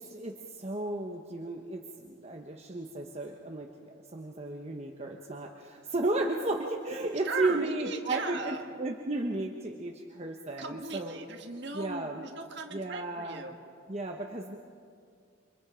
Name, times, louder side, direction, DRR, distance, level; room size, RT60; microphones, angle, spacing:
voice 1, 0.0-3.7 4.1-11.2 11.7-12.2 12.7-13.4 13.9-14.6, right 2 dB, 30° right, 1 dB, 1.1 m, -34 dB
voice 2, 7.2-8.6 10.6-13.6, right 4 dB, 60° right, 3 dB, 1.9 m, -38 dB
29.0 x 26.0 x 5.1 m, 2.3 s
head